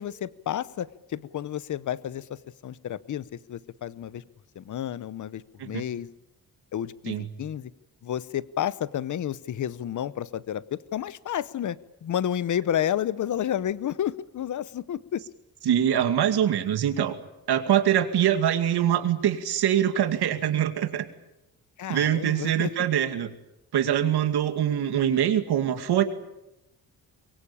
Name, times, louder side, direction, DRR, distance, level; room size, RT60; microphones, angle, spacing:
voice 1, 0.0-4.2 4.5-6.1 6.7-7.7 8.0-15.2 21.8-22.7, left 10 dB, 50° left, 18 dB, 0.9 m, -31 dB
voice 2, 15.7-17.1 17.5-21.0 21.9-23.3 23.7-26.0, right 10 dB, 85° right, 8 dB, 2.5 m, -23 dB
24.0 x 23.0 x 8.7 m, 0.91 s
wide cardioid pair, 155°, 38 cm